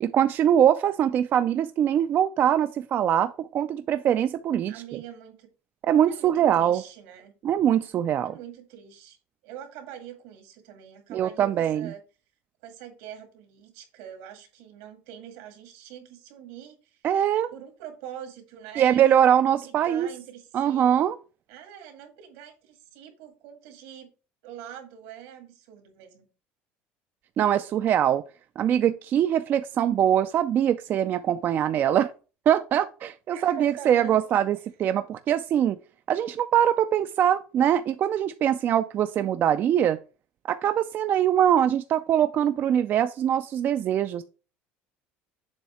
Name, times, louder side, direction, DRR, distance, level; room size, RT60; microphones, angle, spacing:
voice 1, 0.0-4.7 5.8-6.8 7.4-8.4 11.1-11.9 17.0-17.5 18.8-20.1 20.5-21.2 27.4-28.2 28.6-32.1 32.5-35.8 36.1-40.0 40.5-44.2, right 10 dB, 45° right, 10 dB, 0.4 m, -23 dB
voice 2, 4.7-5.5 6.0-7.4 8.2-9.2 9.4-12.0 12.6-17.0 17.5-19.3 19.6-20.9 21.5-24.1 24.4-26.3 33.3-34.2, right 10 dB, 85° right, 5 dB, 2.0 m, -43 dB
7.2 x 2.8 x 5.6 m, 0.34 s
cardioid pair, 125°, 5 cm